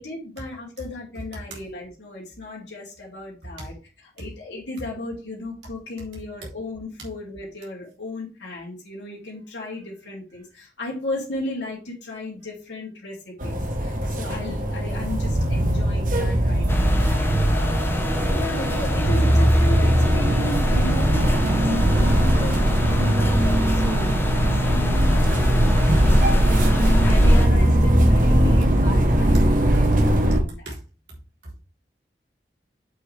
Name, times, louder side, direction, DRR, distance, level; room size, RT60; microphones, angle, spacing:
voice 1, 0.0-3.7 4.1-30.7, left 1 dB, 80° left, 2.8 m, -35 dB
sound 1, 13.4-30.4, equal, 45° right, 1.1 m, -19 dB
sound 2, 16.7-27.5, left 1 dB, 15° left, 0.9 m, -28 dB
voice 2, 30.3-30.8 31.4-31.6, right 2 dB, 75° right, 3.4 m, -38 dB
7.7 x 6.1 x 3.4 m
head